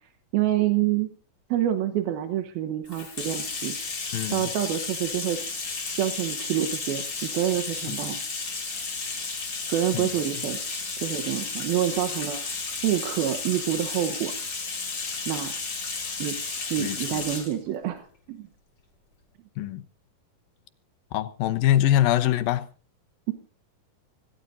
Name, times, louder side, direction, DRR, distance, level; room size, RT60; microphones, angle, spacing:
voice 1, 0.3-1.1 1.5-3.8 4.3-5.4 6.0-8.2 9.7-10.6 11.0-12.4 12.8-14.3 15.3-15.5 16.2-16.4 16.7-18.5 23.3-23.4, right 12 dB, 80° right, 3.1 m, -27 dB
Bathtub (filling or washing), 2.9-17.5, left 4 dB, 30° left, 3.1 m, -33 dB
voice 2, 4.1-4.5 7.9-8.0 9.9-10.1 16.8-17.2 19.6-19.8 21.1-22.7, left 12 dB, 80° left, 2.7 m, -24 dB
25.5 x 17.0 x 2.7 m
omnidirectional pair, 4.3 m